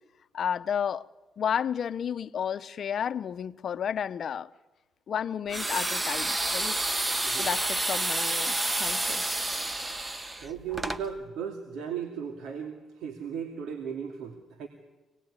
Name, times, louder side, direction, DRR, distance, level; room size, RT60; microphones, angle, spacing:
voice 1, 0.3-1.0 1.4-4.5 5.1-6.8 7.4-9.2, left 8 dB, 55° left, 0.8 m, -32 dB
sound 1, 5.5-11.0, right 2 dB, 20° right, 1.4 m, -29 dB
voice 2, 10.4-14.7, right 7 dB, 80° right, 2.4 m, -36 dB
26.0 x 19.5 x 9.8 m
cardioid pair, 90°, 0 cm